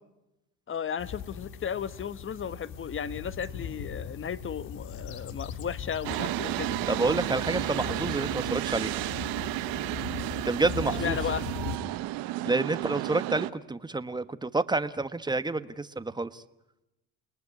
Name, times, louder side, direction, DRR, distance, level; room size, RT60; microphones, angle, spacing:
voice 1, 0.7-6.8 10.9-11.5, left 7 dB, 35° left, 15 dB, 1.3 m, -34 dB
sound 1, 1.0-11.8, left 8 dB, 70° left, 2.4 m, -39 dB
sound 2, 6.0-13.5, right 16 dB, 70° right, 1.1 m, -32 dB
voice 2, 6.9-8.9 10.4-11.2 12.4-16.4, right 3 dB, 10° right, 12 dB, 1.3 m, -29 dB
29.5 x 19.0 x 9.6 m, 0.94 s
supercardioid pair, 90°, 36 cm